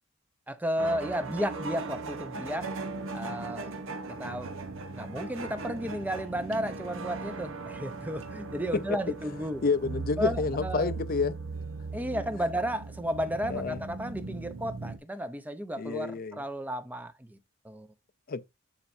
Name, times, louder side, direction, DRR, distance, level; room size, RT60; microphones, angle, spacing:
voice 1, 0.5-2.7 3.1-3.7 4.1-4.5 4.9-9.6 10.2-10.9 11.9-17.4 17.6-17.9, equal, 10° right, 0.6 m, -33 dB
sound 1, 0.8-15.0, right 3 dB, 75° right, 1.0 m, -38 dB
voice 2, 9.6-11.4 13.5-13.8 15.8-16.4 18.3-18.5, left 4 dB, 45° left, 0.5 m, -29 dB
11.5 x 4.4 x 2.6 m
head